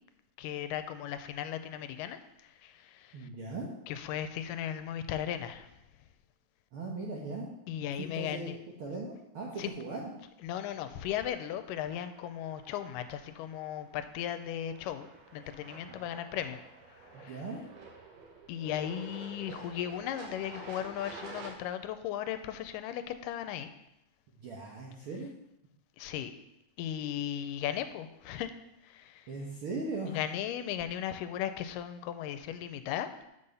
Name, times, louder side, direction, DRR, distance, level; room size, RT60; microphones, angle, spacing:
voice 1, 0.4-2.2 2.6-3.3 3.9-5.7 7.7-8.6 9.6-9.7 10.4-16.6 17.2-17.4 18.5-23.7 26.0-26.3 26.8-28.5 28.8-29.2 30.1-33.1, left 10 dB, 85° left, 10 dB, 2.2 m, -36 dB
voice 2, 3.1-3.7 6.7-7.5 8.1-10.1 15.9-16.0 17.1-17.6 24.4-25.3 29.3-30.2, right 3 dB, 65° right, -2 dB, 1.4 m, -39 dB
sound 1, 10.8-21.5, right 3 dB, 80° right, 2.9 m, -50 dB
6.8 x 5.5 x 6.7 m, 0.88 s
omnidirectional pair, 3.8 m